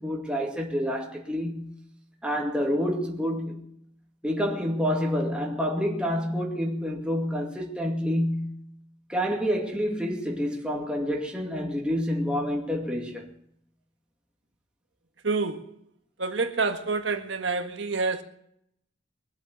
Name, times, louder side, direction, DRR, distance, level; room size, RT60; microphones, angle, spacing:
voice 1, 0.0-1.7 2.2-3.6 4.2-8.6 9.1-13.3, equal, 5° right, 2.4 m, -28 dB
voice 2, 15.2-15.7 16.2-18.2, right 4 dB, 65° right, 1.7 m, -27 dB
23.5 x 8.0 x 6.8 m
head